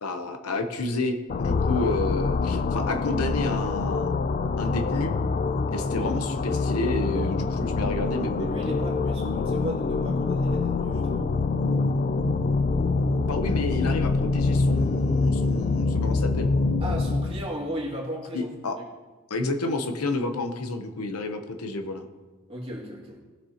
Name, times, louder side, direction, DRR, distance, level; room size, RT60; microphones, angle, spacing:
voice 1, 0.0-4.1 4.6-5.1 5.7-8.5 13.3-16.5 18.3-18.8 19.3-22.0, left 2 dB, 85° left, 7 dB, 0.9 m, -30 dB
sound 1, 1.3-17.5, left 3 dB, 35° left, 0.3 m, -25 dB
voice 2, 5.8-6.1 8.4-11.3 16.8-18.5 22.5-23.2, equal, 25° right, -4 dB, 2.2 m, -35 dB
17.5 x 6.3 x 2.9 m, 1.3 s
head